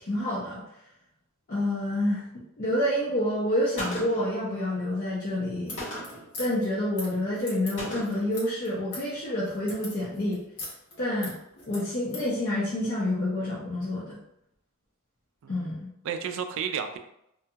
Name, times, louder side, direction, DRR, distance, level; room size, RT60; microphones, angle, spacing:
voice 1, 0.0-0.6 1.5-2.2 2.6-5.9 6.4-10.4 11.0-11.4 11.7-14.2 15.5-15.9, left 1 dB, 45° left, -8 dB, 0.6 m, -28 dB
Gunshot gunfire, 3.8-4.4 5.8-6.3 7.8-8.3, equal, 60° left, 1.3 m, -36 dB
sound 1, 5.6-12.3, left 2 dB, 85° left, 1.1 m, -42 dB
voice 2, 15.4-17.0, right 7 dB, 60° right, 8 dB, 0.3 m, -33 dB
2.6 x 2.2 x 2.7 m, 0.80 s
head